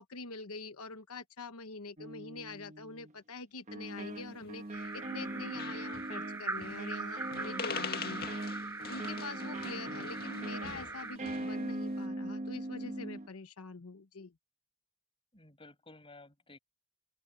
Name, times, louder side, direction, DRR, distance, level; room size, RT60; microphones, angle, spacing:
voice 1, 0.0-8.3 8.9-14.3, left 3 dB, 90° left, 1.1 m, -45 dB
sound 1, 2.0-3.1 3.7-13.3, right 1 dB, 35° right, 1.3 m, -41 dB
sound 2, 4.4-5.0 5.3-5.4 5.6-6.1 6.6-7.0 7.2-11.6, left 6 dB, 45° left, 1.9 m, -44 dB
sound 3, 4.7-11.2, right 3 dB, 10° right, 0.4 m, -42 dB
voice 2, 7.8-8.1 15.3-16.6, left 2 dB, 25° left, 5.7 m, -55 dB
open air
head